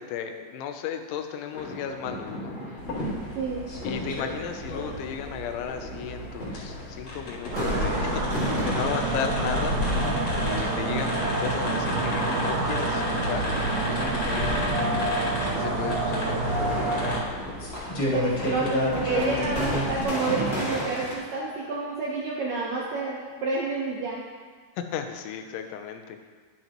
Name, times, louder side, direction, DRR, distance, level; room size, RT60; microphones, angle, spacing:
voice 1, 0.0-2.8 3.8-9.8 10.4-13.5 13.8-15.0 15.4-17.4 24.8-26.3, left 8 dB, 85° left, 6 dB, 3.1 m, -35 dB
sound 1, 1.5-21.1, left 1 dB, 25° left, 1.3 m, -36 dB
sound 2, 2.8-20.0, left 1 dB, 45° left, 4.2 m, -33 dB
voice 2, 3.4-3.7 18.1-24.2, right 4 dB, 75° right, -5 dB, 2.0 m, -29 dB
sound 3, 7.5-17.2, right 2 dB, 55° right, 2.4 m, -27 dB
11.0 x 10.5 x 3.0 m, 1.5 s
omnidirectional pair, 5.2 m